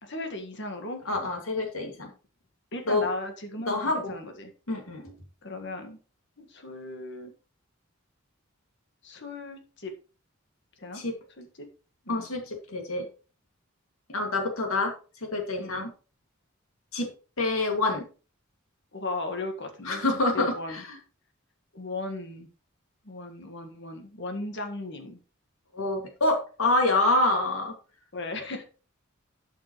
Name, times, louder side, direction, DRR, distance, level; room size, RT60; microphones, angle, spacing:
voice 1, 0.0-1.0 2.7-4.5 5.4-6.0 6.4-7.3 9.0-9.9 10.8-11.0 11.4-11.7 12.0-12.3 15.6-15.8 18.9-20.0 20.3-20.8 21.7-22.5 23.0-25.2 28.1-28.6, left 2 dB, 60° left, 6 dB, 1.7 m, -36 dB
voice 2, 1.1-2.1 2.9-3.0 3.7-4.1 4.7-5.1 10.9-11.1 12.1-13.1 14.1-14.9 15.2-15.9 16.9-17.1 17.4-18.0 19.8-21.0 25.7-27.7, left 2 dB, 90° left, 2 dB, 2.2 m, -27 dB
12.0 x 5.9 x 3.1 m, 0.36 s
head